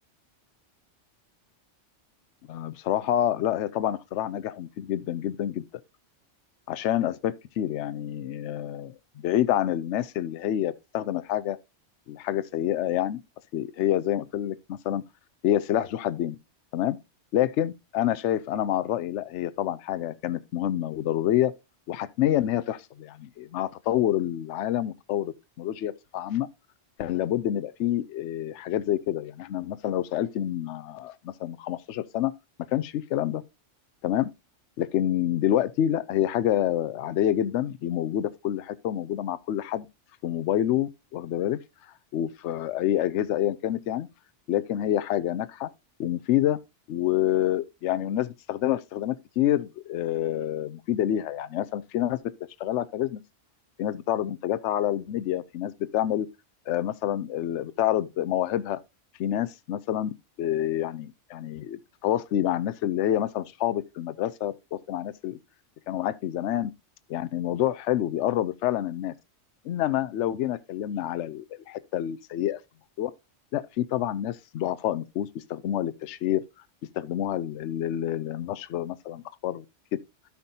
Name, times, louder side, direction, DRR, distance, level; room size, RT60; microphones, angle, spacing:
voice 1, 2.5-5.6 6.7-11.6 12.1-13.2 13.5-15.0 15.4-16.4 16.7-17.0 17.3-21.5 21.9-26.5 27.0-32.3 32.7-33.4 34.0-34.3 34.8-39.9 40.2-41.6 42.1-44.1 44.5-45.7 46.0-46.6 46.9-52.2 52.6-53.2 53.8-56.3 56.7-58.8 59.2-60.1 60.4-65.4 65.9-66.7 67.1-69.1 69.6-72.6 73.0-73.1 73.5-76.4 77.0-79.6, left 12 dB, 75° left, 0.9 m, -27 dB
13.0 x 5.8 x 2.8 m
omnidirectional pair, 1.2 m